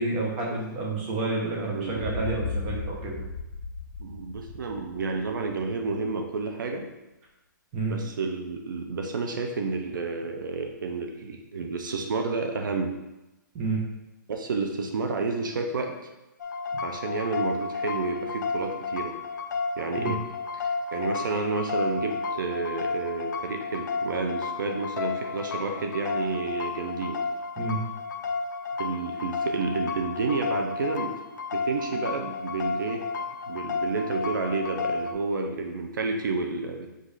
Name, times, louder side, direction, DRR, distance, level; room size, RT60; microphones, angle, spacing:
voice 1, 0.0-3.2 7.7-8.0 13.5-13.8 20.0-20.1 27.6-27.8, right 3 dB, 15° right, -2 dB, 0.7 m, -29 dB
voice 2, 1.5-2.3 4.0-6.9 7.9-12.9 14.3-16.0 16.8-19.2 19.8-20.2 20.5-27.2 28.8-31.1 31.5-33.0 33.5-36.9, right 4 dB, 70° right, 4 dB, 0.6 m, -30 dB
sound 1, 1.9-5.7, left 3 dB, 45° left, 1.5 m, -36 dB
sound 2, 16.4-35.1, left 4 dB, 65° left, 0.5 m, -32 dB
5.1 x 2.5 x 3.9 m, 0.99 s
hypercardioid pair, 170°, 11 cm